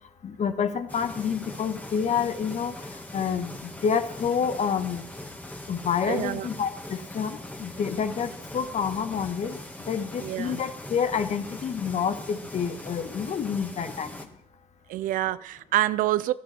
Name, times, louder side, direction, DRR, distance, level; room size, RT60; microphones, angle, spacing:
voice 1, 0.2-2.8 3.1-5.0 5.7-9.6 9.9-14.1, left 7 dB, 50° left, 10 dB, 1.4 m, -28 dB
sound 1, 0.9-14.3, left 1 dB, 10° left, 2.0 m, -41 dB
voice 2, 6.0-6.5 10.2-10.6 14.9-16.3, right 14 dB, 65° right, 18 dB, 0.5 m, -27 dB
14.5 x 12.5 x 4.3 m, 0.77 s
hypercardioid pair, 50°, 15 cm